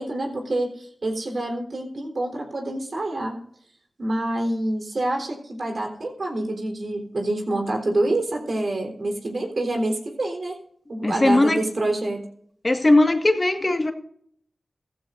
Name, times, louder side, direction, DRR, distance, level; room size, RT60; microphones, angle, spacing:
voice 1, 0.0-3.4 4.0-10.6 10.9-12.2, right 1 dB, 65° right, 3.7 m, -27 dB
voice 2, 11.0-11.6 12.6-13.9, left 2 dB, 35° left, 1.6 m, -19 dB
15.0 x 15.0 x 2.6 m
cardioid pair, 50°, 0 cm